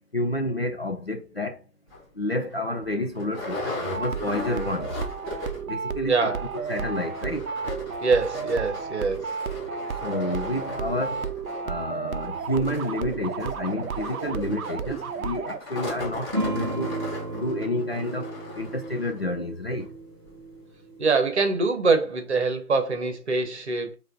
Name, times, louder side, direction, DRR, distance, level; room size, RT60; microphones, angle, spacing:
voice 1, 0.1-1.6 2.2-4.9 5.7-7.5 10.0-11.2 11.6-17.0 17.3-19.9, left 1 dB, 45° left, 0.4 m, -30 dB
sound 1, 1.9-2.0 2.5-2.6 2.8-5.8 6.0-6.1 6.4-19.2 19.8-19.9 20.3-20.4, left 2 dB, 15° left, 2.1 m, -37 dB
sound 2, 3.9-15.6, right 6 dB, 65° right, 0.6 m, -33 dB
voice 2, 6.1-6.5 8.0-9.4 21.0-24.0, right 4 dB, 45° right, 1.0 m, -24 dB
sound 3, 16.3-21.2, right 1 dB, 15° right, 0.6 m, -34 dB
4.8 x 2.5 x 3.8 m
figure-of-eight pair, 150°, 47 cm